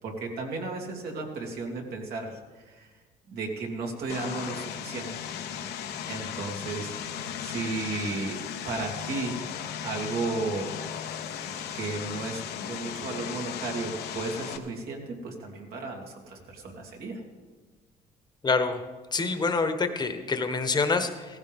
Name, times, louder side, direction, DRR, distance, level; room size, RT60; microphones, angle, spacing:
voice 1, 0.0-2.9 3.3-5.1 6.1-6.9 7.4-8.4 8.6-9.4 9.8-10.8 11.7-12.4 12.7-17.2, right 3 dB, 65° right, 0 dB, 2.9 m, -34 dB
Vehicle, 4.1-14.6, left 8 dB, 75° left, 1.1 m, -36 dB
voice 2, 18.4-18.8 19.1-21.4, left 4 dB, 25° left, 8 dB, 1.3 m, -26 dB
17.0 x 15.0 x 3.7 m, 1.4 s
cardioid pair, 110°, 17 cm